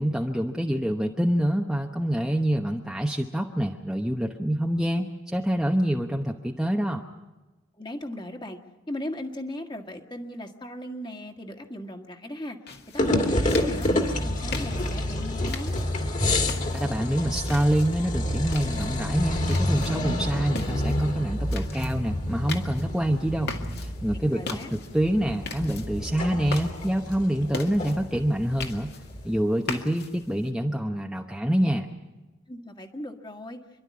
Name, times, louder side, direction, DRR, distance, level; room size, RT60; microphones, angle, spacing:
voice 1, 0.0-7.0 16.7-23.5 23.8-28.9 29.2-31.9, equal, 5° right, 1 dB, 0.9 m, -26 dB
voice 2, 7.8-8.6 8.9-12.6 12.9-15.7 24.3-24.7 32.5-33.6, left 1 dB, 20° left, 4 dB, 1.8 m, -37 dB
sound 1, 12.7-30.5, left 4 dB, 50° left, 2.1 m, -41 dB
sound 2, 13.0-29.4, left 1 dB, 35° left, 2.4 m, -29 dB
28.0 x 12.0 x 9.6 m, 1.1 s
head